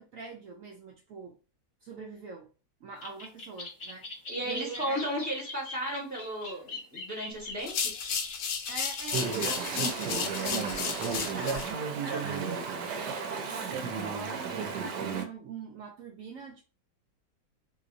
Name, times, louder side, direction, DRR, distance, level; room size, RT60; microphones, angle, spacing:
voice 1, 0.0-1.4 1.8-2.5 2.8-4.1 4.4-5.0 8.7-12.5 12.8-16.6, right 4 dB, 70° right, 0.8 m, -43 dB
sound 1, 3.0-9.3, left 2 dB, 45° left, 0.9 m, -43 dB
voice 2, 4.3-7.9, equal, 10° left, 1.1 m, -34 dB
sound 2, 7.6-11.7, left 6 dB, 70° left, 1.1 m, -33 dB
Chatter / Stream, 9.1-15.3, right 5 dB, 90° right, 1.2 m, -33 dB
3.7 x 2.9 x 2.5 m
omnidirectional pair, 1.8 m